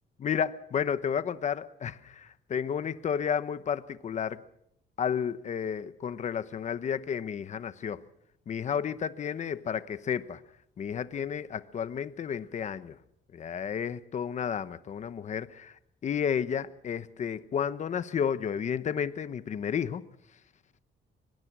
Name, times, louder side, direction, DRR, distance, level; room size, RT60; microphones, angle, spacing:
voice 1, 0.2-4.4 5.0-8.0 8.5-10.4 10.8-13.0 13.3-20.0, left 7 dB, 40° left, 1.0 m, -32 dB
24.5 x 21.5 x 6.2 m
cardioid pair, 165°, 19 cm